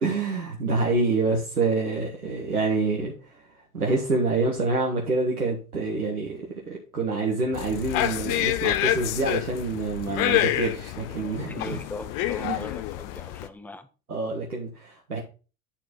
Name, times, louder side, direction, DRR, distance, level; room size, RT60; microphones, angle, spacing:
voice 1, 0.0-3.4 3.7-11.8 12.4-12.6 14.1-15.2, right 3 dB, 85° right, -1 dB, 1.4 m, -27 dB
sound 1, 7.5-13.5, left 13 dB, 45° left, 0.8 m, -27 dB
voice 2, 11.5-13.9, left 2 dB, 5° left, 9 dB, 0.9 m, -39 dB
9.6 x 4.2 x 4.2 m, 0.34 s
figure-of-eight pair, 70°, 43 cm